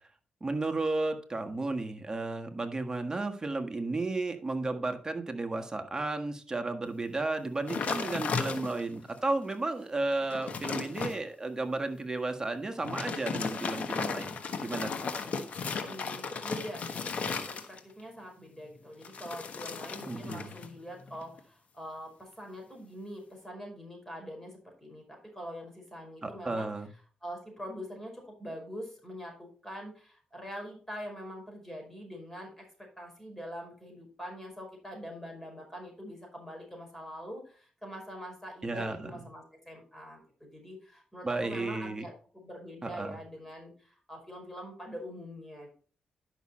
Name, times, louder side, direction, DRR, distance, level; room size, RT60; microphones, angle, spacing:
voice 1, 0.4-15.1 20.1-20.5 26.2-26.9 38.6-39.2 41.2-42.1 42.8-43.2, right 2 dB, 25° right, 5 dB, 1.6 m, -33 dB
sound 1, 7.7-9.0 9.5-9.6 10.0-11.2 12.7-18.0 19.0-20.7 21.0-21.4, left 5 dB, 65° left, 1.3 m, -35 dB
voice 2, 15.8-25.0 25.3-26.7 27.2-32.7 33.0-45.7, equal, 10° left, 1 dB, 5.2 m, -44 dB
11.0 x 6.2 x 4.3 m, 0.40 s
cardioid pair, 75°, 3 cm